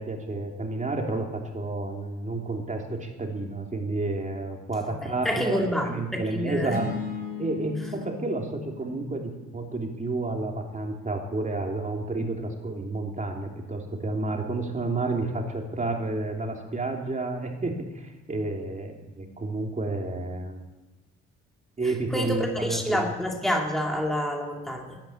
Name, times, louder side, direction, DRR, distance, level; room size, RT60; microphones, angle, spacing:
voice 1, 0.0-6.9 7.4-20.6 21.8-23.0, right 2 dB, 25° right, 1 dB, 3.2 m, -30 dB
voice 2, 5.0-6.8 22.1-25.0, equal, ahead, 1 dB, 2.2 m, -28 dB
sound 1, 6.7-11.0, left 7 dB, 30° left, 4.4 m, -39 dB
14.0 x 10.5 x 9.1 m, 1.1 s
cardioid pair, 90°, 30 cm